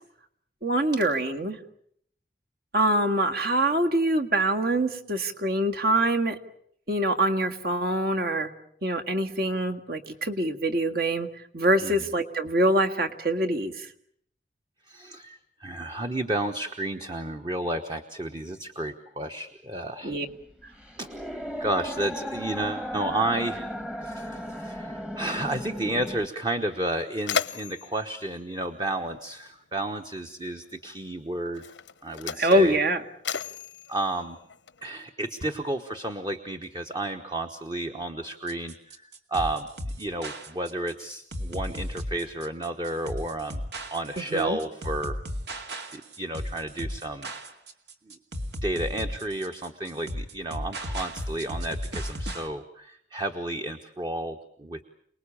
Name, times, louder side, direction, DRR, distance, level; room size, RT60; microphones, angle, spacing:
voice 1, 0.6-1.6 2.7-6.4 6.9-8.5 8.8-11.3 11.5-13.9 20.0-20.3 32.4-33.0 44.3-44.6, right 1 dB, 55° right, 5 dB, 1.8 m, -24 dB
voice 2, 14.9-20.2 21.0-21.1 21.6-23.7 24.0-31.6 32.0-32.8 33.9-34.4 34.8-38.7 39.3-39.7 40.0-43.6 43.9-45.2 45.9-47.3 48.6-54.8, right 1 dB, 25° right, 6 dB, 1.1 m, -32 dB
sound 1, 20.3-26.3, equal, 5° right, 1.1 m, -36 dB
Mechanisms, 26.3-26.4 26.8-29.5 30.5-30.6 31.5-35.0, left 7 dB, 90° left, 1.0 m, -35 dB
sound 2, 38.5-52.5, equal, 75° right, 2.3 m, -35 dB
28.5 x 20.0 x 8.6 m, 0.69 s
head